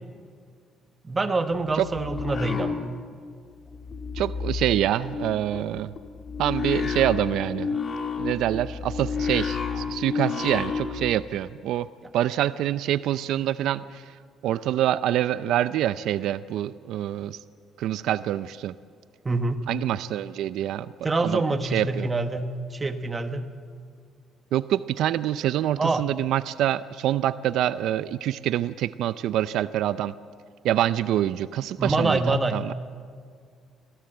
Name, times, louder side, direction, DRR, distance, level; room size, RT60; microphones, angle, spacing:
voice 1, 1.0-2.9 19.2-19.6 21.0-23.5 25.8-26.0 31.8-32.6, right 2 dB, 20° right, 8 dB, 1.2 m, -26 dB
sound 1, 1.7-3.4 3.6-11.1, left 5 dB, 35° left, 2.3 m, -31 dB
voice 2, 4.1-5.9 6.4-7.7 8.2-11.9 12.1-17.4 17.8-18.7 19.7-20.9 21.2-21.4 21.7-22.1 24.5-30.1 30.6-32.7, right 12 dB, 75° right, 15 dB, 0.5 m, -26 dB
26.0 x 16.5 x 7.9 m, 2.1 s
cardioid pair, 145°, 0 cm